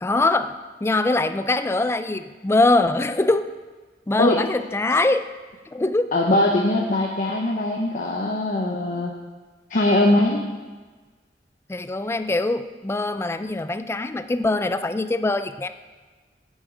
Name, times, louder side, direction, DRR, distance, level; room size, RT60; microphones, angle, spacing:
voice 1, 0.0-3.4 4.1-5.2 5.7-6.1 11.7-15.7, left 2 dB, 15° left, 11 dB, 0.3 m, -22 dB
voice 2, 6.1-9.1 9.7-10.4, left 1 dB, 50° left, 0 dB, 0.8 m, -21 dB
9.2 x 6.5 x 5.1 m, 1.3 s
head